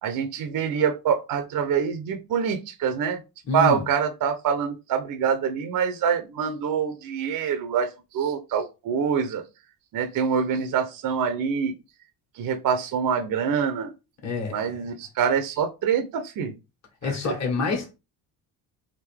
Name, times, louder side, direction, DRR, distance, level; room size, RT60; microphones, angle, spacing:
voice 1, 0.0-3.2 3.5-9.4 9.9-11.7 12.3-13.9 14.5-16.5 17.0-17.3, right 7 dB, 50° right, 0.7 m, -25 dB
voice 2, 3.5-3.8 14.2-14.7 17.0-17.9, left 4 dB, 40° left, 1.5 m, -27 dB
3.6 x 2.6 x 3.4 m
supercardioid pair, 85°, 42 cm